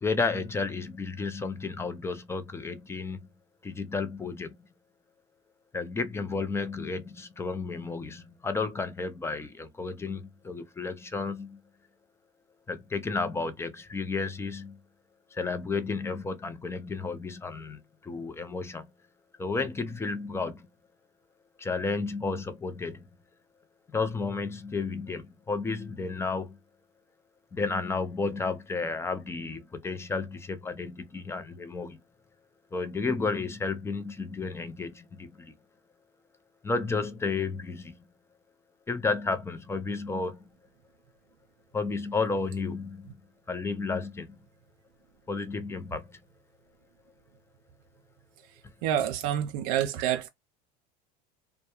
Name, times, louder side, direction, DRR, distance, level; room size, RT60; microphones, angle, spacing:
voice 1, 0.0-3.2 3.6-4.5 5.7-11.6 12.7-14.8 15.3-18.9 19.4-20.7 21.6-23.1 23.9-26.6 27.5-32.0 32.7-35.5 36.6-37.9 38.9-40.4 41.7-43.0 43.5-44.3 45.3-46.2, left 4 dB, 10° left, 0.4 m, -32 dB
voice 2, 48.8-50.3, right 10 dB, 70° right, 0.4 m, -27 dB
2.2 x 2.1 x 2.8 m
supercardioid pair, 100°, 21 cm